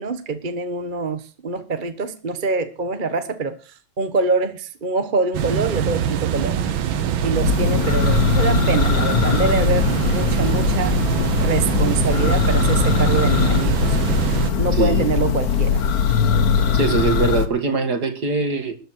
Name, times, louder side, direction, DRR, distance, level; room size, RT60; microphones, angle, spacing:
voice 1, 0.0-7.0 7.2-11.0 11.4-14.0 14.6-15.8 16.6-16.8, right 4 dB, 30° right, 1.2 m, -25 dB
sound 1, 5.3-14.5, right 9 dB, 80° right, 1.8 m, -23 dB
Church bell, 7.2-17.5, left 6 dB, 50° left, 1.7 m, -20 dB
voice 2, 14.7-15.1 16.7-18.8, right 4 dB, 55° right, 2.7 m, -22 dB
13.5 x 7.4 x 9.6 m
omnidirectional pair, 2.2 m